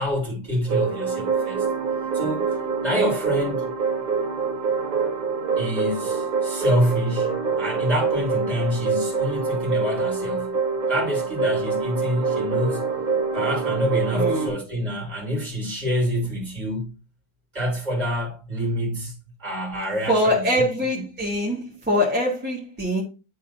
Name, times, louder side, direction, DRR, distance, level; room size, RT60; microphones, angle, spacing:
voice 1, 0.0-1.7 2.1-3.7 5.6-10.5 10.9-12.8 13.3-16.9 17.5-19.1 19.4-20.4, equal, 25° right, 2.5 m, -26 dB
sound 1, 0.7-14.5, right 5 dB, 70° right, 1.6 m, -25 dB
voice 2, 14.1-14.6 20.1-23.0, equal, 5° right, 1.4 m, -23 dB
10.5 x 3.7 x 2.8 m
omnidirectional pair, 1.6 m